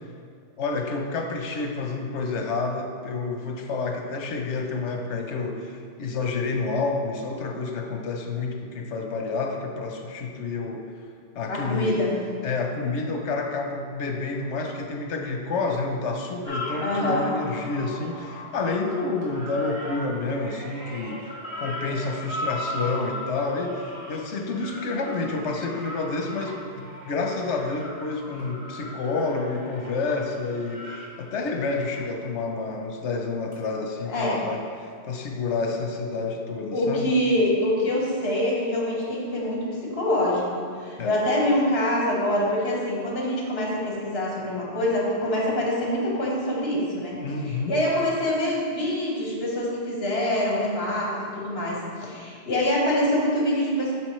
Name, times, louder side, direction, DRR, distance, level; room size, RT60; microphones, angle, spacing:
voice 1, 0.6-10.9 11.3-12.0 12.4-21.3 21.6-37.1 41.0-41.2 47.2-47.8, left 3 dB, 85° left, 2 dB, 1.1 m, -29 dB
voice 2, 11.5-12.1 16.8-17.3 34.1-34.4 36.7-53.9, left 1 dB, 65° left, -4 dB, 1.7 m, -25 dB
sound 1, 16.4-32.0 33.5-33.6, equal, 35° right, 1.4 m, -38 dB
7.8 x 5.9 x 3.1 m, 2.2 s
omnidirectional pair, 1.2 m